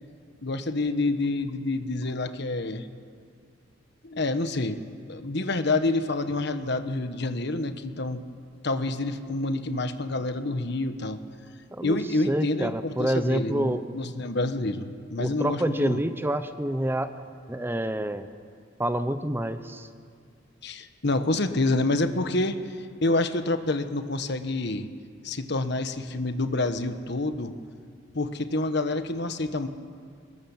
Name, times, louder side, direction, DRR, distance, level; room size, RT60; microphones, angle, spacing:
voice 1, 0.4-2.9 4.0-4.8 5.1-8.2 8.6-11.2 11.8-16.0 20.6-22.8 23.0-24.9 25.2-27.5 28.1-29.7, left 2 dB, 60° left, 9 dB, 1.3 m, -28 dB
voice 2, 12.3-13.8 15.2-18.3 18.8-19.9, right 1 dB, 10° right, 10 dB, 0.8 m, -28 dB
24.5 x 20.5 x 7.3 m, 2.1 s
head